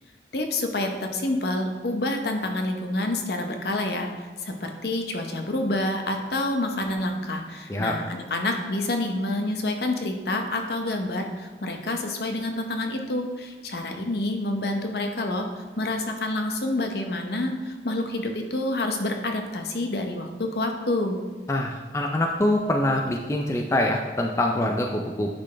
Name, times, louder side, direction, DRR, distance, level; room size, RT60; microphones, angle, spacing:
voice 1, 0.3-21.2, left 2 dB, 65° left, 4 dB, 0.8 m, -28 dB
voice 2, 21.5-25.4, left 1 dB, 15° left, 2 dB, 0.4 m, -24 dB
9.7 x 4.0 x 3.3 m, 1.5 s
head